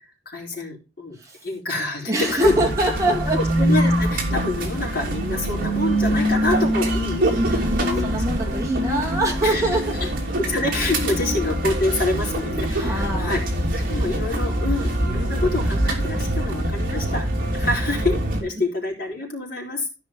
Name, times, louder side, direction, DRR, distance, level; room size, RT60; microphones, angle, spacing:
voice 1, 0.3-1.2 1.4-2.6 3.3-8.5 9.1-9.8 10.4-13.4 13.8-17.2 17.5-19.9, left 2 dB, 55° left, -1 dB, 4.3 m, -27 dB
voice 2, 2.1-3.4 7.3-10.1 11.2-11.4 12.7-13.4 17.6-17.7, right 1 dB, 15° right, -1 dB, 3.3 m, -25 dB
sound 1, 2.4-18.4, right 1 dB, 50° right, 2.8 m, -24 dB
14.0 x 5.5 x 4.8 m, 0.30 s
head